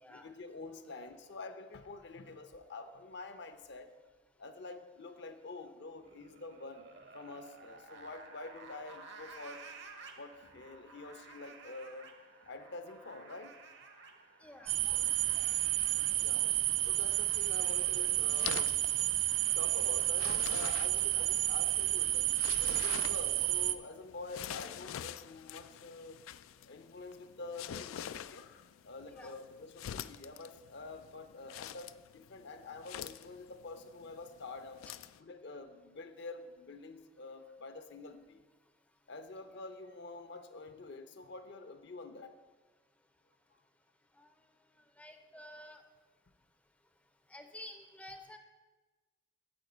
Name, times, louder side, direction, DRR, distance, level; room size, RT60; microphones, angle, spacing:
voice 1, 0.1-3.9 4.4-6.9 7.1-9.7 10.2-12.1 12.5-13.6 16.2-16.4 16.9-18.8 19.5-22.4 22.6-26.2 26.6-34.8 35.2-38.4 39.1-42.3, left 3 dB, 60° left, 9 dB, 0.7 m, -47 dB
sound 1, 6.0-23.0, right 4 dB, 60° right, 1.0 m, -55 dB
voice 2, 14.4-14.7 15.3-15.5 29.1-29.3 45.0-45.8 47.3-48.4, left 1 dB, 5° left, 6 dB, 0.5 m, -50 dB
sound 2, 14.7-23.8, right 15 dB, 80° right, 0.5 m, -31 dB
sound 3, 17.4-35.2, left 10 dB, 90° left, 0.3 m, -47 dB
8.9 x 5.1 x 7.9 m, 1.3 s
head